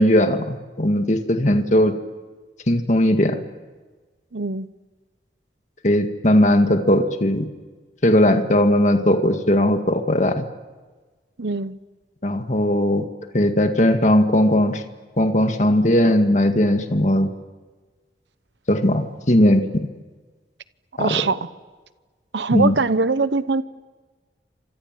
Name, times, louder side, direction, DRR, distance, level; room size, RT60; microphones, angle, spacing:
voice 1, 0.0-1.9 2.7-3.4 5.8-7.5 8.0-10.4 12.2-13.0 13.3-14.8 15.2-17.3 18.7-19.9 21.0-21.2 22.5-22.8, left 1 dB, 45° left, 2.0 m, -18 dB
voice 2, 4.3-4.7 11.4-11.7 21.0-21.4 22.3-23.6, right 4 dB, 85° right, 0.9 m, -22 dB
30.0 x 26.0 x 7.6 m
head